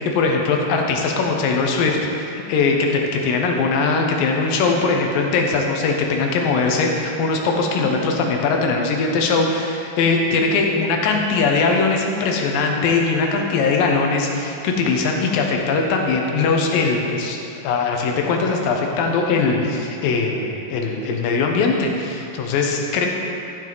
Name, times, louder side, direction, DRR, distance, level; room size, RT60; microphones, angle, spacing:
voice 1, 0.0-17.4 17.6-23.1, left 4 dB, 85° left, 1 dB, 2.7 m, -20 dB
13.5 x 7.5 x 3.9 m, 2.8 s
omnidirectional pair, 3.9 m